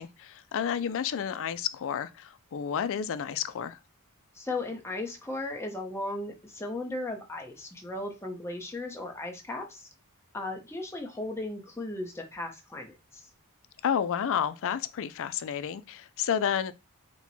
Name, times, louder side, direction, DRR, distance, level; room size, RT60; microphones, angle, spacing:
voice 1, 0.0-3.8 13.8-16.7, left 8 dB, 65° left, 0.4 m, -30 dB
voice 2, 4.3-9.9 10.3-13.2, left 2 dB, 10° left, 0.8 m, -36 dB
4.4 x 2.2 x 4.1 m
head